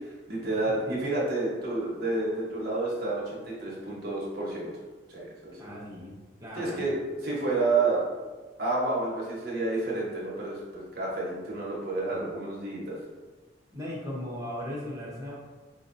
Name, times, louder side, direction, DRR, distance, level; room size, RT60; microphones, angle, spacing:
voice 1, 0.3-4.7 5.1-5.7 6.6-8.0 8.6-13.0, right 2 dB, 55° right, -5 dB, 1.1 m, -30 dB
voice 2, 5.6-6.9 12.1-12.4 13.7-15.3, left 1 dB, 15° right, -6 dB, 0.9 m, -38 dB
5.0 x 2.7 x 2.6 m, 1.3 s
head